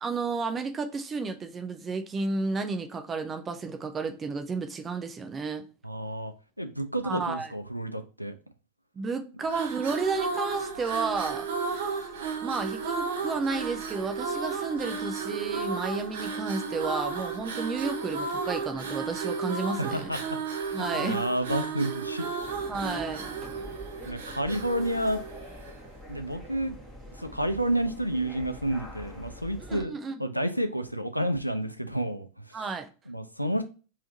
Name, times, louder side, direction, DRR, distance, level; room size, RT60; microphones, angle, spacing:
voice 1, 0.0-5.7 7.0-7.5 9.0-11.5 12.4-20.1 20.7-21.2 22.7-23.3 29.7-30.2 32.5-32.9, right 4 dB, 20° right, 0.5 m, -32 dB
voice 2, 5.8-6.3 6.6-8.3 19.8-22.3 24.1-25.2 26.1-26.8 27.1-29.9 30.2-32.6 33.1-33.6, right 1 dB, 90° left, 0.5 m, -30 dB
sound 1, 9.4-25.9, right 5 dB, 60° right, 0.8 m, -33 dB
sound 2, 22.4-29.9, equal, ahead, 1.2 m, -45 dB
3.5 x 2.7 x 3.9 m
figure-of-eight pair, 90°, 0 cm